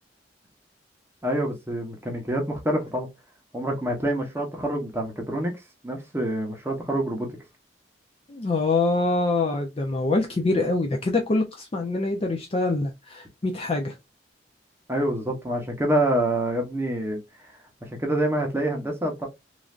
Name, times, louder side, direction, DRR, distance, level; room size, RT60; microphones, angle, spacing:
voice 1, 1.2-3.1 3.5-5.5 5.8-7.3 14.9-17.2 17.9-19.3, right 1 dB, 15° right, 0.8 m, -26 dB
voice 2, 8.3-13.9, left 2 dB, 35° left, 0.4 m, -25 dB
3.1 x 2.5 x 2.4 m
head